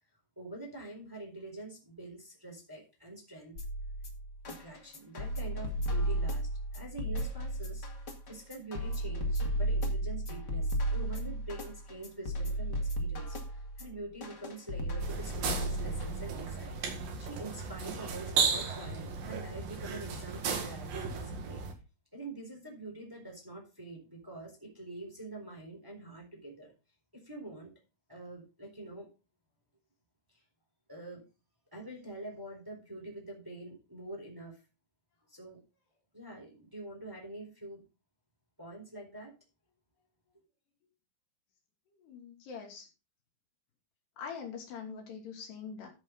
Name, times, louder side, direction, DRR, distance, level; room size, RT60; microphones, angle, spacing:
voice 1, 0.4-3.6 4.4-7.9 8.3-16.8 17.2-21.6 22.1-26.7 27.1-27.7 28.1-29.1 30.3-30.4 30.9-31.2 31.7-34.6 35.3-35.6 36.1-37.8 38.6-39.3, right 2 dB, 5° right, 1 dB, 3.6 m, -45 dB
sound 1, 3.6-16.5, right 1 dB, 35° left, 1.8 m, -34 dB
sound 2, 15.0-21.7, right 5 dB, 65° right, 3.5 m, -35 dB
voice 2, 41.9-42.9 44.2-45.9, left 6 dB, 85° left, 2 dB, 4.6 m, -43 dB
13.5 x 7.0 x 3.9 m, 0.30 s
omnidirectional pair, 4.6 m